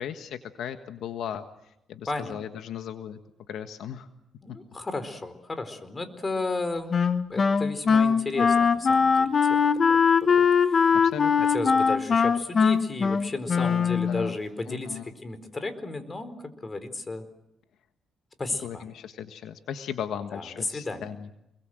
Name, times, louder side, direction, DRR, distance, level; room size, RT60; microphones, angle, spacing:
voice 1, 0.0-1.4 1.9-3.2 3.5-4.1 11.0-11.3 13.6-13.8 14.1-14.4 14.7-15.0 18.6-21.3, left 9 dB, 75° left, 7 dB, 1.5 m, -36 dB
voice 2, 2.1-2.4 4.4-7.0 7.3-9.7 10.2-11.0 11.5-17.2 18.4-18.8 20.3-21.1, left 3 dB, 25° left, 11 dB, 4.1 m, -34 dB
Wind instrument woodwind instrument, 6.9-14.3, left 6 dB, 45° left, 1.5 m, -21 dB
28.5 x 22.5 x 7.8 m, 0.85 s
cardioid pair, 90°, 0 cm